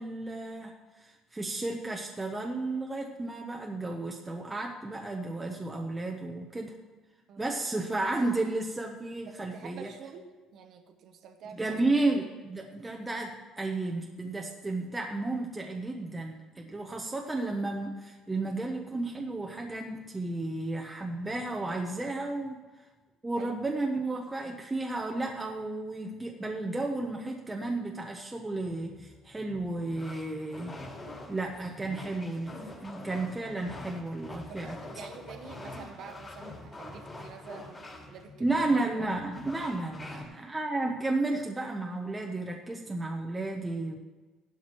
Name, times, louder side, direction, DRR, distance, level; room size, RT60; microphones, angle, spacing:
voice 1, 0.0-6.8 7.4-9.9 11.5-22.6 23.2-30.8 31.3-34.8 38.4-44.0, right 2 dB, 10° right, 0 dB, 0.8 m, -33 dB
voice 2, 9.3-11.8 23.4-23.8 34.3-38.6 39.0-39.1, right 6 dB, 50° right, 5 dB, 0.9 m, -48 dB
sound 1, 28.7-40.2, left 2 dB, 20° left, 2.4 m, -45 dB
16.5 x 11.5 x 3.1 m, 1.3 s
cardioid pair, 155°, 0 cm